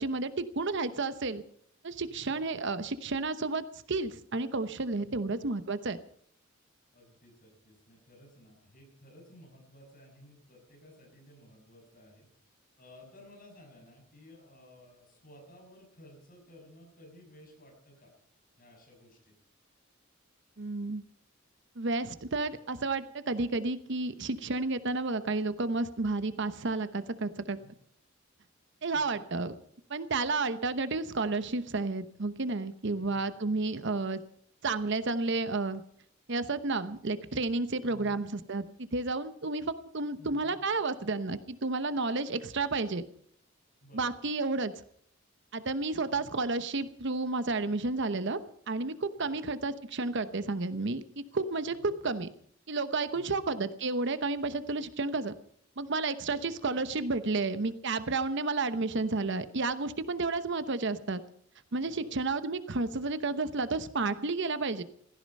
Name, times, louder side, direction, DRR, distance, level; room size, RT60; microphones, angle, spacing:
voice 1, 0.0-1.4 1.8-6.0 20.6-21.0 21.8-27.6 28.8-29.5 29.9-34.2 34.6-35.8 36.3-43.0 43.9-44.7 45.5-48.4 48.7-52.3 52.7-55.3 55.8-61.2 61.7-64.8, right 3 dB, 60° right, 12 dB, 0.9 m, -31 dB
voice 2, 2.1-2.5 5.0-5.2 6.9-18.1 18.6-19.3 27.5-27.7 28.9-29.1 33.0-33.2 33.6-33.8 37.9-38.2 40.2-40.6 43.8-44.2 46.1-46.3 49.2-49.6 51.7-52.0 53.1-53.4 56.3-56.6 61.8-62.1, equal, 45° left, 1 dB, 6.5 m, -55 dB
16.5 x 15.0 x 5.4 m, 0.64 s
head